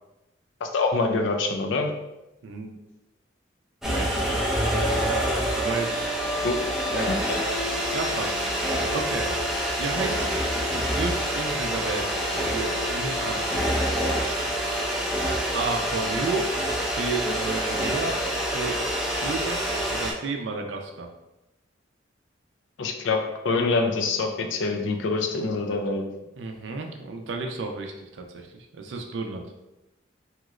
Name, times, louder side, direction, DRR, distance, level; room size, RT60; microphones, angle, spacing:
voice 1, 0.6-1.9 6.4-6.6 6.9-7.2 22.8-26.1, left 3 dB, 80° left, 4 dB, 0.4 m, -25 dB
voice 2, 2.4-2.8 3.8-4.1 4.6-5.2 5.5-5.9 6.9-7.2 7.9-8.4 8.9-9.3 9.8-10.3 10.7-13.7 15.5-16.5 17.0-18.2 18.4-18.8 19.2-19.6 19.9-21.1 26.4-29.5, right 3 dB, 75° right, 4 dB, 0.4 m, -32 dB
sound 1, 3.8-20.1, equal, ahead, 0.5 m, -26 dB
2.9 x 2.4 x 3.0 m, 0.96 s
head